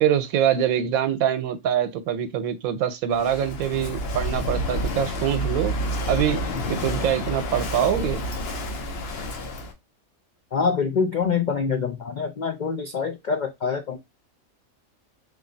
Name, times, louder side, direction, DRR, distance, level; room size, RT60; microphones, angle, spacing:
voice 1, 0.0-5.7 6.1-8.2, right 9 dB, 85° right, 1.1 m, -24 dB
Walk footsteps / Wind / Waves surf, 3.1-9.7, equal, 55° left, 0.9 m, -29 dB
voice 2, 10.5-14.0, left 5 dB, 75° left, 0.4 m, -25 dB
3.3 x 2.6 x 3.8 m
omnidirectional pair, 1.4 m